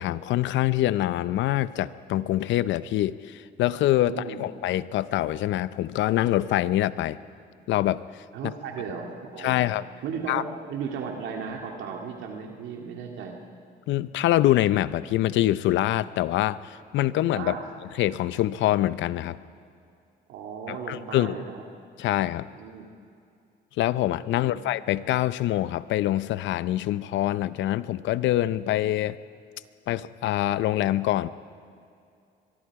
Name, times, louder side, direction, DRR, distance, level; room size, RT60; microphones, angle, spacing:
voice 1, 0.0-7.2 7.7-8.0 8.4-8.5 9.4-9.8 10.3-10.4 13.9-17.6 18.0-19.4 20.7-21.3 22.0-22.5 23.8-29.2 29.9-31.3, left 14 dB, 80° left, 16 dB, 0.7 m, -25 dB
voice 2, 4.0-4.4 8.3-9.6 10.0-13.3 17.3-17.7 20.3-21.6 22.5-22.9 24.3-24.6, right 6 dB, 85° right, 1 dB, 2.4 m, -35 dB
23.5 x 23.5 x 4.8 m, 2.5 s
cardioid pair, 100°, 19 cm